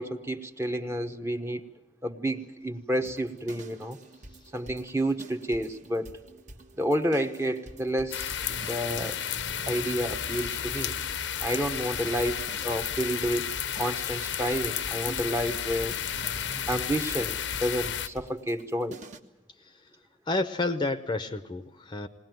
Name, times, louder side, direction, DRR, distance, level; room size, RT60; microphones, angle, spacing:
voice 1, 0.0-1.6 2.0-4.0 4.5-6.1 6.8-9.2 9.7-10.9 11.4-16.0 16.7-19.0, equal, 15° right, 6 dB, 1.0 m, -30 dB
sound 1, 3.0-19.2, right 1 dB, 40° right, 1.4 m, -46 dB
sound 2, 8.1-18.1, left 9 dB, 80° left, 0.8 m, -32 dB
voice 2, 20.3-22.1, left 2 dB, 25° left, 10 dB, 0.7 m, -30 dB
20.5 x 19.0 x 9.3 m, 0.96 s
head